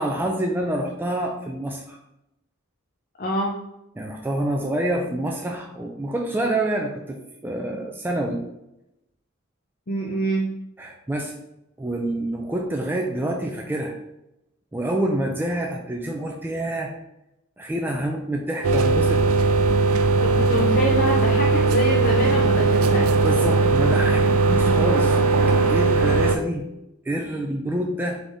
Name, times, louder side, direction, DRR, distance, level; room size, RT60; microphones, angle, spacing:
voice 1, 0.0-2.0 4.0-7.2 7.4-8.4 10.8-11.4 11.8-14.0 14.7-16.9 17.6-19.2 23.2-26.6 27.0-28.2, right 1 dB, 10° right, 1 dB, 0.3 m, -27 dB
voice 2, 3.2-3.5 9.9-10.4 20.2-23.1, equal, 45° left, -2 dB, 0.6 m, -26 dB
sound 1, 18.6-26.4, right 3 dB, 75° right, 0.4 m, -19 dB
3.9 x 3.4 x 3.6 m, 0.87 s
head